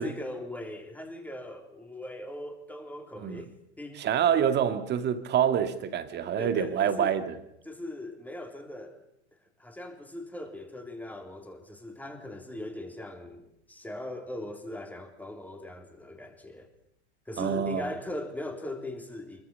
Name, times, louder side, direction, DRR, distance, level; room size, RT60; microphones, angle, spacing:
voice 1, 0.0-4.1 6.4-7.2 7.6-9.0 9.6-16.7 17.3-19.4, left 1 dB, 5° left, 3.5 m, -40 dB
voice 2, 4.0-7.4 17.4-17.9, right 9 dB, 30° right, 2.1 m, -26 dB
25.0 x 22.5 x 5.5 m
hypercardioid pair, 110°, 34 cm